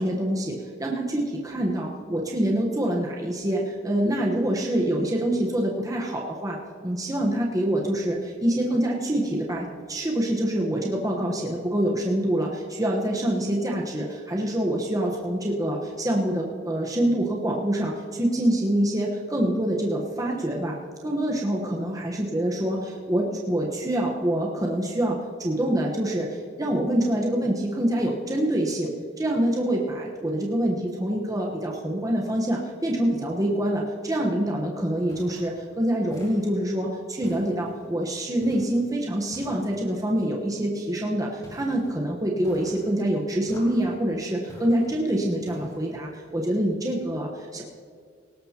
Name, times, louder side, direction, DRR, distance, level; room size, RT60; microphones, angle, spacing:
voice 1, 0.0-6.6 6.8-20.8 21.0-22.8 23.1-28.9 29.2-47.6, right 1 dB, 20° right, -1 dB, 1.1 m, -26 dB
sound 1, 35.1-35.6 36.1-36.7 37.2-37.9 38.4-38.8 39.3-39.9 41.4-41.9 42.4-43.0 43.5-44.0 44.5-45.0 45.5-46.0, equal, 20° left, 4.4 m, -47 dB
18.5 x 18.0 x 2.9 m, 2.1 s
head